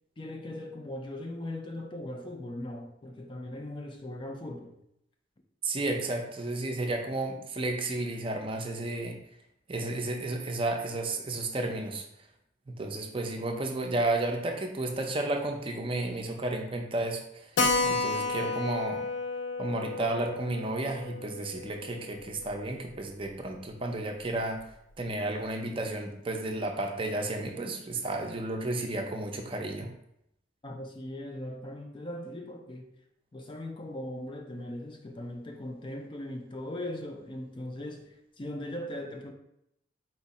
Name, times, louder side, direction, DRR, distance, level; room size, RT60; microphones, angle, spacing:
voice 1, 0.2-4.8 30.6-32.9 33.3-39.3, left 1 dB, 25° left, 0.4 m, -39 dB
voice 2, 5.6-9.2 9.7-12.0 12.7-17.5 17.8-19.1 19.6-24.6 25.0-29.9, right 2 dB, 30° right, 0.5 m, -32 dB
Keyboard (musical), 17.6-22.6 22.9-23.0 23.3-23.4 23.6-23.7 24.3-24.6, left 3 dB, 75° left, 0.5 m, -32 dB
4.4 x 2.6 x 4.1 m
head